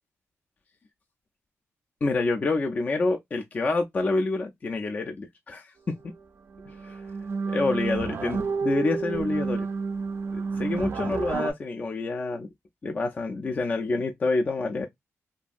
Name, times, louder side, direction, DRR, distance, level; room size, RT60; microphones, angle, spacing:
voice 1, 2.0-5.9 6.8-7.0 7.5-9.7 10.3-12.5 12.8-14.9, left 3 dB, 30° left, 0.3 m, -27 dB
sound 1, 6.1-6.2 6.5-11.5, right 5 dB, 55° right, 0.4 m, -30 dB
2.6 x 2.4 x 2.4 m
wide cardioid pair, 130°, 5 cm